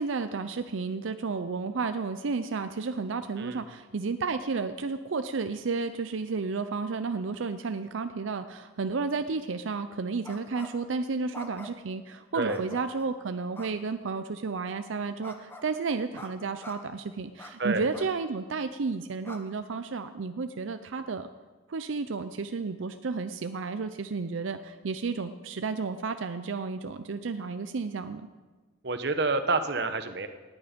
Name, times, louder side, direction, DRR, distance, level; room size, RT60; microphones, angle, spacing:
voice 1, 0.0-21.3 21.7-28.3, right 4 dB, 85° right, 9 dB, 0.5 m, -32 dB
sound 1, 10.2-10.9 11.3-11.9 12.5-13.1 13.5-13.7 15.2-15.7 16.1-16.3 16.6-16.8 17.4-17.5 17.9-18.1 18.6-18.7 19.2-19.4, left 2 dB, 10° left, 1.0 m, -45 dB
voice 2, 28.8-30.3, right 3 dB, 55° right, 9 dB, 0.9 m, -28 dB
18.5 x 9.5 x 5.2 m, 1.3 s
head